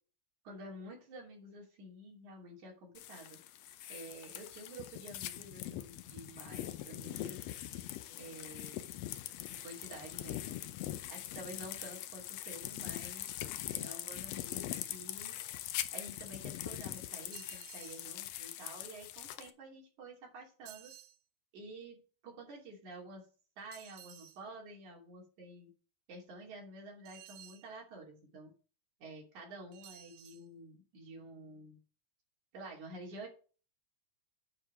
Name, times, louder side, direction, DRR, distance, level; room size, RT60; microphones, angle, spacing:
voice 1, 0.4-3.4 3.9-7.4 8.2-8.9 9.6-10.6 11.1-13.3 13.7-15.4 15.9-20.9 21.5-23.3 23.6-25.7 26.1-28.5 29.0-31.8 32.5-33.3, right 1 dB, 65° right, -2 dB, 4.2 m, -50 dB
sound 1, 2.9-19.5, left 13 dB, 85° left, 1.5 m, -42 dB
sound 2, 17.3-18.1 20.6-21.2 23.7-24.4 27.0-27.7 29.7-30.4, right 14 dB, 85° right, 1.5 m, -54 dB
9.7 x 5.0 x 4.9 m, 0.38 s
omnidirectional pair, 3.7 m